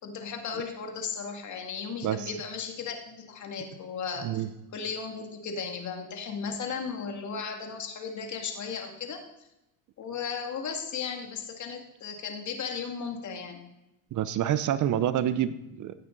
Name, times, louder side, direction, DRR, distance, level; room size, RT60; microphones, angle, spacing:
voice 1, 0.0-4.4 4.7-9.2 10.0-13.6, left 6 dB, 45° left, 3 dB, 2.3 m, -35 dB
voice 2, 2.0-2.3 4.2-4.5 14.1-15.9, right 11 dB, 45° right, 13 dB, 0.8 m, -27 dB
16.5 x 8.7 x 4.0 m, 0.90 s
cardioid pair, 115°, 41 cm